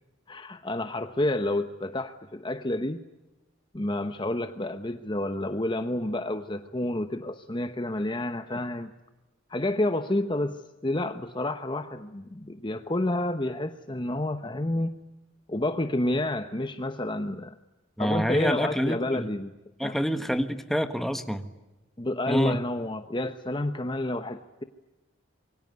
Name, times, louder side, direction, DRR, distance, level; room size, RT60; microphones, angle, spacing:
voice 1, 0.3-3.0 3.7-8.9 9.5-14.9 15.5-17.6 18.0-19.5 19.8-20.0 22.0-24.6, left 1 dB, 25° left, 9 dB, 0.9 m, -29 dB
voice 2, 18.0-19.3 19.8-21.4 22.3-22.6, equal, ahead, 8 dB, 1.5 m, -27 dB
26.5 x 23.0 x 9.5 m, 1.0 s
head